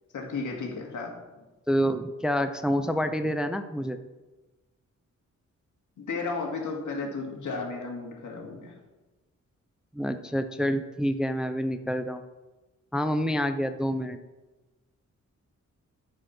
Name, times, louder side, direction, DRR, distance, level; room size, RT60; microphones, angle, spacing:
voice 1, 0.1-1.1 1.4-1.5 6.0-8.7, left 4 dB, 85° left, 0 dB, 2.2 m, -34 dB
voice 2, 1.7-4.0 9.9-12.2 12.9-14.2, equal, 5° right, 8 dB, 0.4 m, -27 dB
13.5 x 4.9 x 5.9 m, 1.1 s
wide cardioid pair, 165°, 30 cm